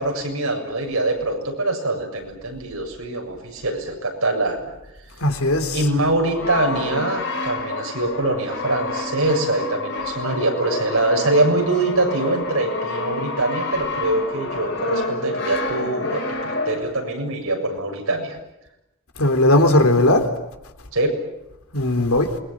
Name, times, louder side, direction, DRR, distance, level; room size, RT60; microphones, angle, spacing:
voice 1, 0.0-4.7 5.7-18.4 20.9-21.1, right 2 dB, 85° right, 7.2 m, -23 dB
voice 2, 5.2-5.9 19.2-20.2 21.7-22.3, left 1 dB, 90° left, 3.6 m, -17 dB
Brass instrument, 6.2-17.1, left 3 dB, 55° left, 5.3 m, -29 dB
28.0 x 22.5 x 8.8 m
head